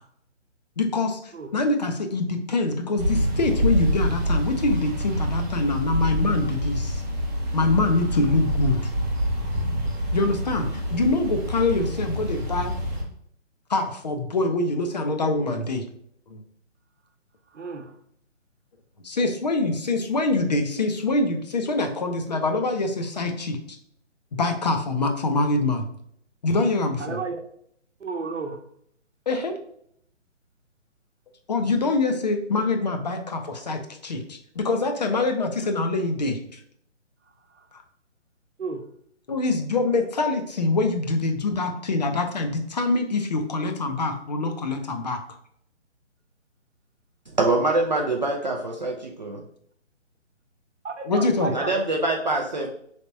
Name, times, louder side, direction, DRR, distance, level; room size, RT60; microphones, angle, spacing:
voice 1, 0.8-7.0 7.5-8.9 10.1-12.7 13.7-15.8 16.3-16.4 19.0-23.8 24.3-25.9 26.4-27.2 29.3-29.5 31.5-36.6 37.7-37.8 39.3-45.2 51.1-51.5, left 3 dB, 35° left, 0.5 m, -24 dB
sound 1, 3.0-13.0, equal, 15° right, 0.9 m, -27 dB
voice 2, 17.5-18.0 27.0-27.4 28.0-28.6 37.5-37.7 38.6-38.8 50.8-51.8, right 4 dB, 75° right, 0.8 m, -32 dB
voice 3, 47.4-49.4 51.5-52.7, right 2 dB, 40° right, 0.4 m, -24 dB
4.2 x 3.4 x 2.6 m
figure-of-eight pair, 145°, 36 cm